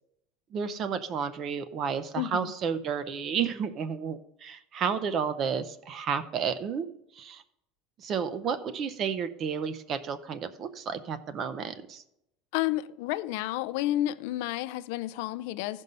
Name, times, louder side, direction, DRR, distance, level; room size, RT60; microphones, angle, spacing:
voice 1, 0.5-6.9 7.2-7.4 8.0-12.0, right 6 dB, 30° right, 0.5 m, -31 dB
voice 2, 2.2-2.5 12.5-15.8, left 15 dB, 65° left, 0.4 m, -31 dB
15.0 x 5.3 x 5.4 m
cardioid pair, 175°, 0 cm